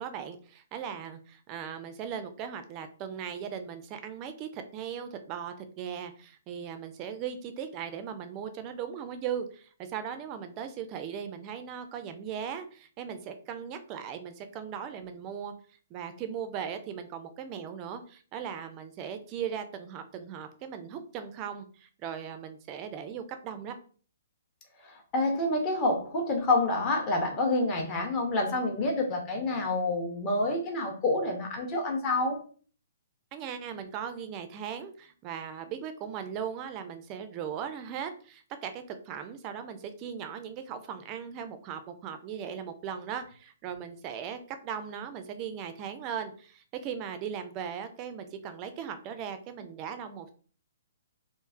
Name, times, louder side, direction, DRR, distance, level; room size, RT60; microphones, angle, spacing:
voice 1, 0.0-15.5 15.9-23.7 33.3-50.3, right 8 dB, 30° right, 8 dB, 0.4 m, -38 dB
voice 2, 24.8-32.4, left 2 dB, 25° left, 1 dB, 0.7 m, -28 dB
3.1 x 2.0 x 2.4 m, 0.42 s
figure-of-eight pair, 125°, 0 cm